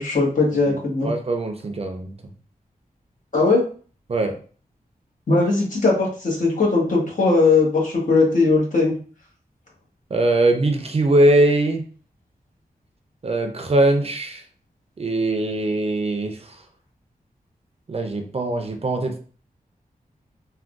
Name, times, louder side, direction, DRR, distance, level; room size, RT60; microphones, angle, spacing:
voice 1, 0.0-1.1 3.3-3.6 5.3-8.9, left 3 dB, 55° left, -3 dB, 1.3 m, -19 dB
voice 2, 0.7-2.1 4.1-4.4 10.1-11.8 13.2-14.4 15.0-16.6 17.9-19.2, right 2 dB, 40° right, 5 dB, 0.5 m, -21 dB
3.4 x 2.3 x 2.5 m, 0.41 s
wide cardioid pair, 100°, 15 cm